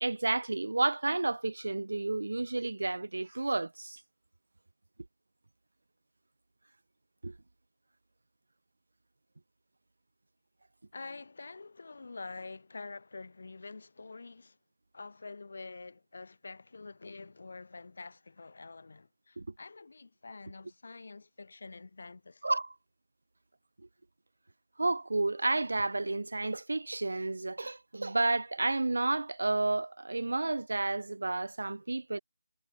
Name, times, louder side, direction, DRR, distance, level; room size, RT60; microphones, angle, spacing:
voice 1, 0.0-4.0 7.2-7.3 19.4-19.5 22.4-22.7 24.8-32.2, right 2 dB, 85° right, 1.1 m, -31 dB
voice 2, 10.9-14.6 14.9-22.4, left 3 dB, 55° left, 5.0 m, -47 dB
figure-of-eight pair, 175°, 0 cm